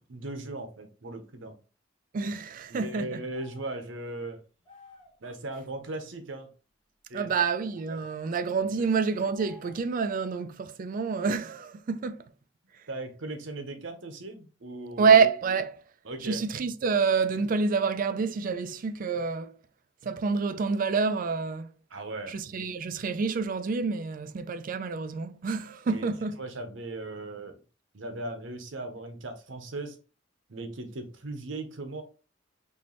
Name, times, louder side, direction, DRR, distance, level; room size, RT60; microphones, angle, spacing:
voice 1, 0.1-1.6 2.7-4.4 5.2-6.5 7.1-7.3 7.9-8.0 8.8-8.9 12.9-15.1 16.0-16.4 21.9-22.4 25.9-27.6 27.9-30.0 30.5-32.0, right 2 dB, 85° right, 0.9 m, -38 dB
voice 2, 2.1-3.2 7.1-12.2 15.0-15.8 16.2-19.5 20.0-21.7 22.3-26.4, right 5 dB, 45° right, 0.4 m, -27 dB
sound 1, 3.3-3.8 4.6-5.2 7.7-8.2 9.2-10.0, left 4 dB, 25° left, 1.5 m, -54 dB
4.4 x 3.1 x 3.0 m
head